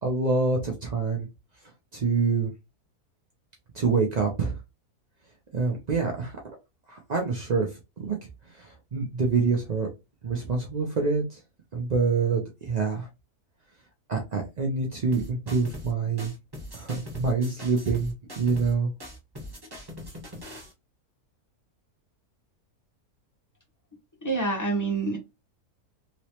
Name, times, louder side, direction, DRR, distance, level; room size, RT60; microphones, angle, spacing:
voice 1, 0.0-1.3 1.9-2.5 3.7-4.6 5.5-6.4 6.9-7.7 8.0-8.2 8.6-9.9 10.2-11.4 11.7-13.1 14.1-16.3 16.7-18.9, right 4 dB, 55° right, 0.4 m, -26 dB
sound 1, 15.1-15.9 16.2-18.7 19.0-20.7, left 1 dB, 20° right, 0.9 m, -41 dB
voice 2, 24.2-25.2, right 3 dB, 15° left, 0.7 m, -27 dB
3.1 x 3.0 x 2.8 m
omnidirectional pair, 1.6 m